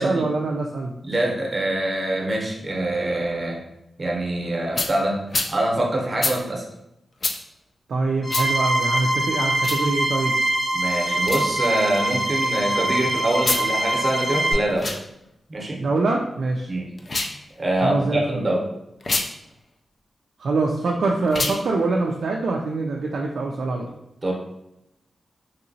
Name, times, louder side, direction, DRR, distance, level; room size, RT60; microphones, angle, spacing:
voice 1, 0.0-0.9 7.9-10.4 15.8-16.7 17.8-18.5 20.4-24.0, right 3 dB, 75° right, 0 dB, 0.3 m, -24 dB
voice 2, 1.0-3.6 4.0-5.2 5.5-6.6 10.7-14.9 15.5-15.8 16.7-16.9 17.6-18.6 24.2-24.3, right 1 dB, 30° right, -1 dB, 0.8 m, -24 dB
sound 1, 4.7-4.9 5.3-5.5 6.2-6.4 7.2-7.4 8.3-8.5 9.6-9.8 11.2-11.5 13.3-13.7 14.7-15.0 17.0-17.4 19.0-19.3 21.3-21.6, left 3 dB, 45° left, 0.3 m, -25 dB
sound 2, 8.2-14.5, right 1 dB, 25° left, 0.8 m, -23 dB
3.2 x 2.8 x 2.6 m, 0.86 s
wide cardioid pair, 115°, 0 cm